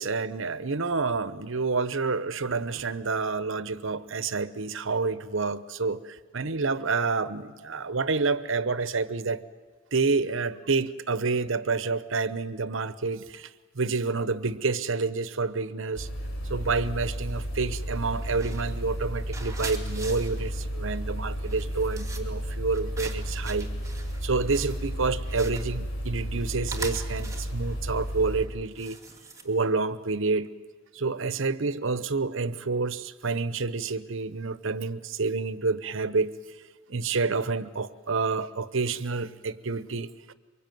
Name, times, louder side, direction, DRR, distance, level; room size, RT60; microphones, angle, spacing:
voice 1, 0.0-9.4 9.9-16.1 16.5-23.7 24.2-29.0 29.4-30.5 30.9-36.3 36.9-40.1, right 4 dB, 70° right, 15 dB, 1.0 m, -28 dB
sound 1, 15.9-28.5, equal, 75° left, 4.3 m, -33 dB
sound 2, 17.1-17.4 17.8-29.8, right 3 dB, 15° right, 2.8 m, -43 dB
24.5 x 23.0 x 9.3 m, 1.4 s
head